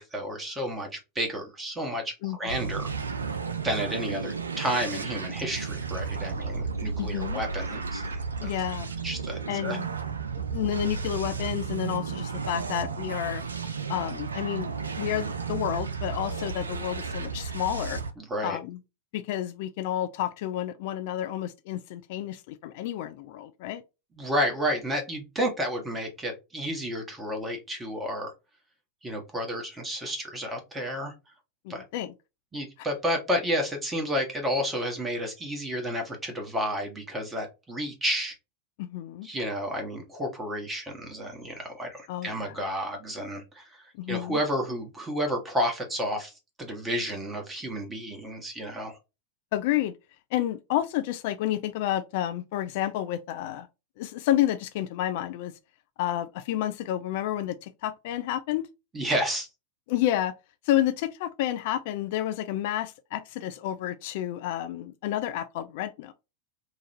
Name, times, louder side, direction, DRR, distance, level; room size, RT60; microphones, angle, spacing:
voice 1, 0.0-2.1 2.4-2.9 3.6-8.5 9.0-9.8 18.2-18.6 24.2-28.3 29.0-31.1 31.7-31.8 32.5-38.3 39.2-43.8 44.1-46.3 46.6-49.0 58.9-59.5, equal, 15° right, 1.4 m, -31 dB
voice 2, 2.2-2.6 7.0-7.4 8.4-8.9 9.5-9.9 10.4-13.4 13.9-18.0 18.4-18.8 19.1-23.8 31.7-32.1 32.8-32.9 38.8-39.3 42.1-42.5 44.0-44.4 49.5-49.9 50.3-53.7 54.0-55.5 56.0-58.7 59.9-60.3 60.6-66.1, left 12 dB, 50° left, 0.3 m, -30 dB
sound 1, 2.5-18.1, right 5 dB, 75° right, 0.4 m, -33 dB
3.9 x 2.5 x 2.7 m
figure-of-eight pair, 90°, 0 cm